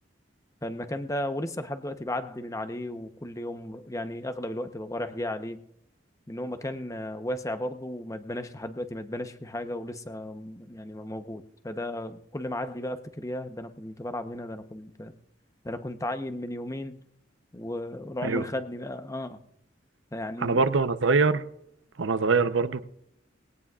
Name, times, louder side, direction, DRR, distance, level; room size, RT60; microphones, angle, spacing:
voice 1, 0.6-5.6 6.3-15.1 15.6-17.0 17.5-19.4 20.1-20.7, left 1 dB, 15° left, 0.8 m, -34 dB
voice 2, 20.4-21.4 22.0-22.9, right 4 dB, 80° right, 0.8 m, -23 dB
21.0 x 17.0 x 2.4 m
head